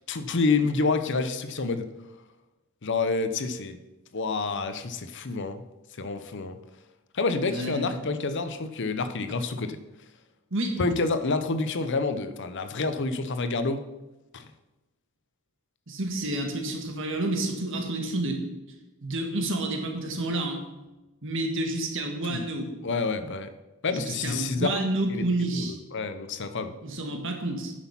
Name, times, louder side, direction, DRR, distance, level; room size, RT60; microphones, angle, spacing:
voice 1, 0.1-1.9 2.8-3.8 4.1-5.6 6.0-6.6 7.1-9.8 10.8-13.8 14.3-14.5 22.3-22.4 22.8-23.5 23.8-24.8 25.1-25.2 25.5-26.7, left 3 dB, 55° left, 10 dB, 0.8 m, -28 dB
voice 2, 7.5-8.0 10.5-10.8 15.9-18.4 19.0-20.6 21.2-22.7 23.9-25.8 26.8-27.7, right 2 dB, 60° right, 3 dB, 1.7 m, -29 dB
9.8 x 6.3 x 5.7 m, 1.1 s
head